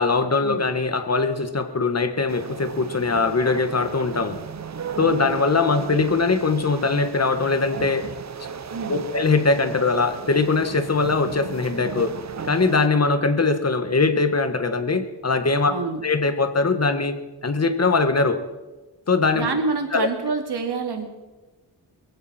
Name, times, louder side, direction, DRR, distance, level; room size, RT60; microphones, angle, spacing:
voice 1, 0.0-4.4 5.0-8.1 8.9-12.1 12.4-15.7 16.0-17.2 17.4-18.4 19.1-19.5 19.9-20.1, left 4 dB, 40° left, 9 dB, 1.6 m, -21 dB
sound 1, 2.3-12.9, right 6 dB, 40° right, 0.8 m, -36 dB
voice 2, 5.0-5.4 8.7-9.0 15.7-16.0 19.3-21.1, right 4 dB, 70° right, 5 dB, 2.5 m, -27 dB
21.5 x 15.5 x 4.4 m, 1.1 s
cardioid pair, 80°, 41 cm